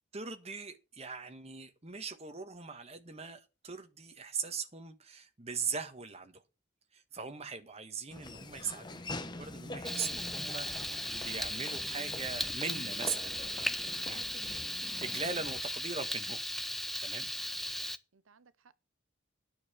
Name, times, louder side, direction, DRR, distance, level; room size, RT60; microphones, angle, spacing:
voice 1, 0.1-6.4 6.9-13.7 14.0-16.4 17.0-17.3, right 5 dB, 30° right, 1.3 m, -41 dB
Laughter / Walk footsteps, 8.1-15.6, left 2 dB, 20° left, 0.9 m, -45 dB
Frying (food), 9.8-18.0, equal, ahead, 0.5 m, -37 dB
voice 2, 17.5-18.7, right 5 dB, 80° right, 0.8 m, -65 dB
9.6 x 6.7 x 7.1 m
head